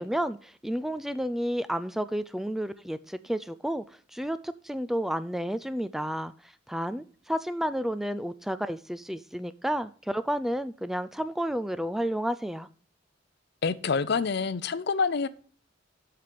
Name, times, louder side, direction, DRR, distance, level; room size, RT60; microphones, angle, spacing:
voice 1, 0.0-3.8 4.1-6.3 6.7-12.7, equal, ahead, 13 dB, 0.3 m, -31 dB
voice 2, 13.6-15.3, left 5 dB, 60° left, 16 dB, 0.6 m, -27 dB
7.7 x 5.9 x 6.8 m, 0.43 s
head